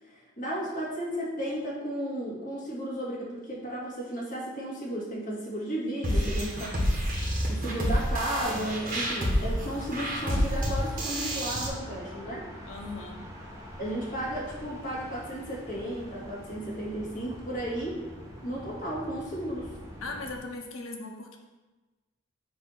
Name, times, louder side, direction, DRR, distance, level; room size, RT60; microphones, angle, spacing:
voice 1, 0.0-6.7 7.5-12.5 13.8-18.0 18.4-19.7, right 1 dB, 40° left, -6 dB, 1.8 m, -34 dB
sound 1, 6.0-11.7, equal, 40° right, 1.2 m, -28 dB
voice 2, 6.1-6.7 12.7-13.2 20.0-21.4, left 3 dB, 85° left, 2 dB, 0.8 m, -39 dB
sound 2, 8.4-20.4, equal, 15° right, 0.9 m, -44 dB
6.7 x 2.7 x 5.6 m, 1.2 s
head